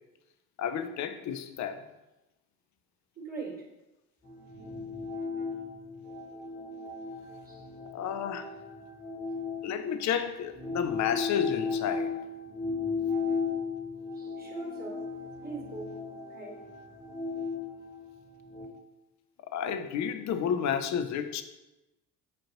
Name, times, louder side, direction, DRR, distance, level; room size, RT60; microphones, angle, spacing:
voice 1, 0.6-1.8 7.9-8.5 9.6-12.2 19.5-21.4, left 8 dB, 40° left, 9 dB, 0.5 m, -31 dB
voice 2, 3.2-3.7 7.4-7.6 14.1-15.1 15.4-16.0 16.3-16.6, right 4 dB, 20° right, -1 dB, 1.3 m, -41 dB
sound 1, 4.2-10.1 10.5-18.7, left 5 dB, 20° left, 1.1 m, -36 dB
6.7 x 2.5 x 2.9 m, 0.99 s
hypercardioid pair, 60°, 48 cm